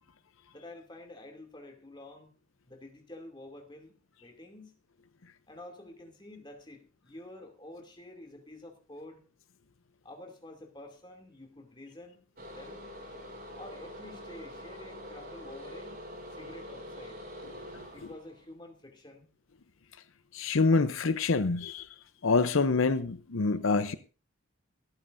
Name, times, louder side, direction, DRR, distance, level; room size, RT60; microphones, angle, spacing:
voice 1, 0.5-2.3 2.6-3.9 4.2-4.7 5.5-9.2 10.0-12.8 13.6-16.0 16.3-17.2 17.9-19.3, left 1 dB, 20° left, 2.6 m, -49 dB
sound 1, 12.4-18.5, left 1 dB, 45° right, 4.7 m, -45 dB
voice 2, 20.3-21.9 22.2-24.0, left 4 dB, 75° left, 0.7 m, -26 dB
24.5 x 9.0 x 2.6 m
head